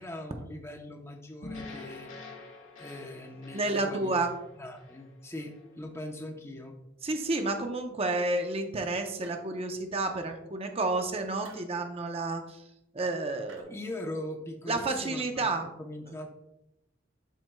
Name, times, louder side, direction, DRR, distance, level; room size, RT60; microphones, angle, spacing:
voice 1, 0.0-2.1 2.8-4.2 4.6-6.8 13.6-16.3, left 1 dB, 15° left, 1 dB, 0.7 m, -41 dB
sound 1, 1.4-5.7, left 3 dB, 85° left, 1.8 m, -46 dB
voice 2, 3.5-4.3 7.0-12.6 12.9-13.7 14.7-15.7, right 2 dB, 30° right, 5 dB, 0.7 m, -30 dB
sound 2, 9.2-9.8 11.4-11.8 13.5-13.6, right 4 dB, 75° right, 1.0 m, -54 dB
11.5 x 4.4 x 2.2 m, 0.87 s
head